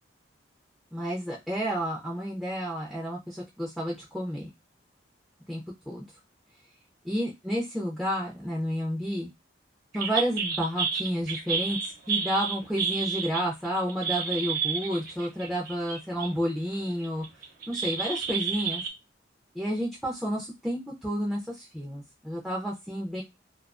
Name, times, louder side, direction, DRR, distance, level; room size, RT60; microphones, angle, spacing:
voice 1, 0.9-4.5 5.5-5.6 5.9-6.0 7.0-9.3 9.9-11.8 12.1-17.2 17.7-18.8 19.5-23.2, equal, ahead, -4 dB, 0.4 m, -30 dB
sound 1, 9.9-16.3 16.7-18.9, right 6 dB, 45° right, 0.7 m, -31 dB
2.3 x 2.3 x 2.3 m, 0.21 s
head